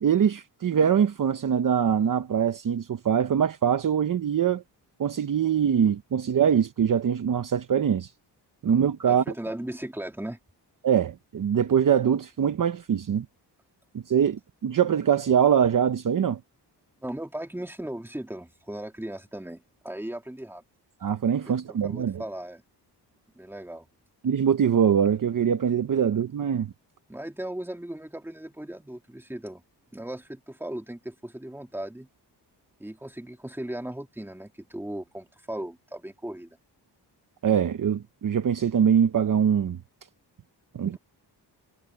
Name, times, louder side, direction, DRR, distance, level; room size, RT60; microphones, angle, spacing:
voice 1, 0.0-4.6 5.0-8.1 8.6-9.2 10.8-13.2 14.1-16.4 21.0-22.2 24.2-26.7 37.4-39.8 40.7-41.0, right 8 dB, 50° right, 0.9 m, -23 dB
voice 2, 9.0-10.4 17.0-20.6 21.5-22.6 23.4-23.8 27.1-29.6 29.9-32.1 32.8-36.5 40.8-41.0, right 1 dB, 5° right, 2.5 m, -37 dB
wide cardioid pair, 150°, 42 cm